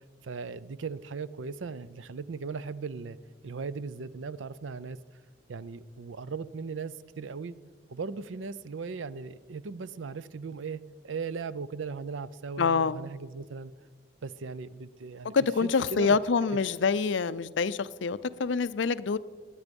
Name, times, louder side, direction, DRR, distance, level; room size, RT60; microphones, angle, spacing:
voice 1, 0.2-3.2 3.4-5.0 5.5-7.5 7.9-13.7 14.2-16.2, right 5 dB, 85° right, 17 dB, 0.5 m, -38 dB
voice 2, 12.6-13.0 15.3-19.2, left 5 dB, 75° left, 16 dB, 0.5 m, -26 dB
20.5 x 9.9 x 5.3 m, 1.5 s
head